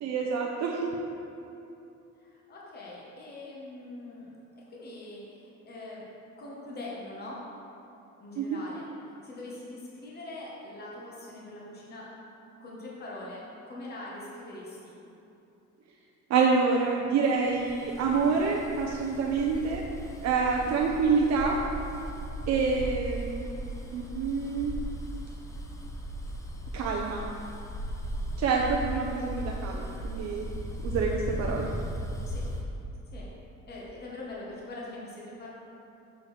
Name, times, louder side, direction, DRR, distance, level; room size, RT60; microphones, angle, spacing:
voice 1, 0.0-0.9 8.4-8.5 16.3-19.8 20.2-21.6 22.5-23.5 23.9-24.7 26.7-27.3 28.4-30.5 30.8-31.7, right 5 dB, 65° right, -1 dB, 0.6 m, -27 dB
voice 2, 2.2-4.4 4.7-6.0 6.4-7.4 8.2-8.9 9.2-12.1 12.6-14.9 32.3-32.5 33.1-33.3 33.7-35.5, left 2 dB, 35° left, -5 dB, 1.1 m, -42 dB
Bus, 17.5-32.6, equal, 10° left, 0.5 m, -37 dB
6.8 x 6.2 x 3.2 m, 2.9 s
cardioid pair, 140°, 30 cm